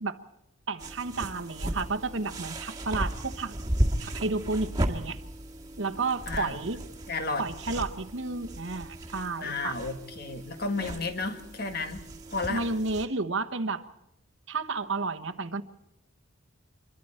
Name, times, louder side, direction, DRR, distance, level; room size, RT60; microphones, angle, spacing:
voice 1, 0.7-3.6 4.0-5.2 5.8-6.8 7.4-9.7 12.5-13.9 14.5-15.6, right 3 dB, 65° right, 8 dB, 1.2 m, -31 dB
sound 1, 0.8-13.1, right 1 dB, 20° right, 1.8 m, -35 dB
voice 2, 6.3-6.6 7.1-7.5 9.4-12.7, left 3 dB, 50° left, 7 dB, 1.9 m, -33 dB
26.5 x 22.5 x 4.4 m, 0.87 s
head